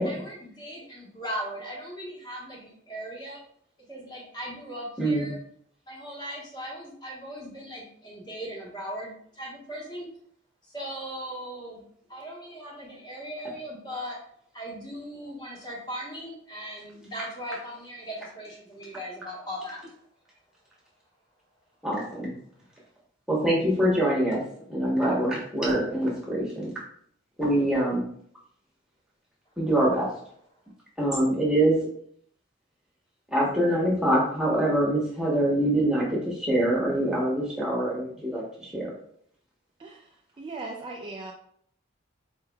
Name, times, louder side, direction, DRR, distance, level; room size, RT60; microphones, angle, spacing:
voice 1, 0.0-3.4 3.9-5.4 5.9-10.1 10.6-11.8 12.1-14.2 14.5-19.8, equal, 20° left, -4 dB, 1.2 m, -38 dB
voice 2, 5.0-5.3 21.8-22.3 23.3-24.4 24.7-26.7 27.4-28.0 29.6-30.1 31.0-31.8 33.3-38.9, right 1 dB, 5° right, -4 dB, 1.1 m, -24 dB
voice 3, 40.4-41.3, right 3 dB, 25° right, 0 dB, 0.3 m, -37 dB
4.2 x 3.3 x 2.3 m, 0.64 s
head